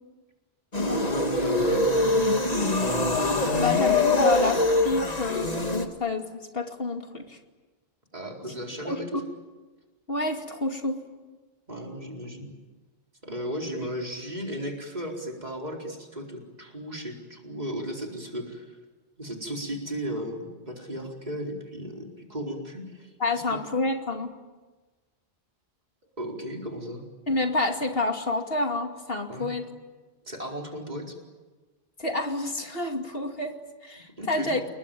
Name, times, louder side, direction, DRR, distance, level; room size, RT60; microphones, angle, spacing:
sound 1, 0.7-5.9, left 2 dB, 40° left, 2.0 m, -23 dB
voice 1, 0.9-2.4 8.1-9.2 11.7-12.5 13.2-18.8 19.2-23.4 26.2-27.0 29.3-29.5 30.2-31.2 34.2-34.6, equal, 40° right, 0 dB, 4.7 m, -35 dB
voice 2, 3.6-7.4 8.8-9.0 10.1-11.1 23.2-24.3 27.3-29.7 32.0-34.6, left 2 dB, 65° left, 4 dB, 2.7 m, -28 dB
28.5 x 21.5 x 9.3 m, 1.3 s
omnidirectional pair, 1.1 m